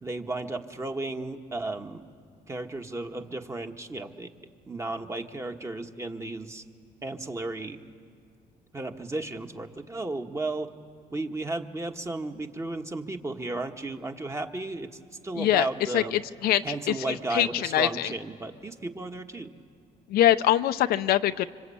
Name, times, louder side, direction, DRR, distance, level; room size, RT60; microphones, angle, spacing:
voice 1, 0.0-2.0 2.5-4.3 4.7-6.6 7.0-7.8 8.7-10.7 11.1-16.2 16.6-19.6, right 2 dB, 15° right, 5 dB, 1.4 m, -34 dB
voice 2, 15.9-16.9 17.3-17.5 17.7-18.1 20.1-21.5, left 12 dB, 70° left, 11 dB, 0.7 m, -23 dB
26.5 x 25.5 x 8.5 m, 2.2 s
cardioid pair, 115°, 16 cm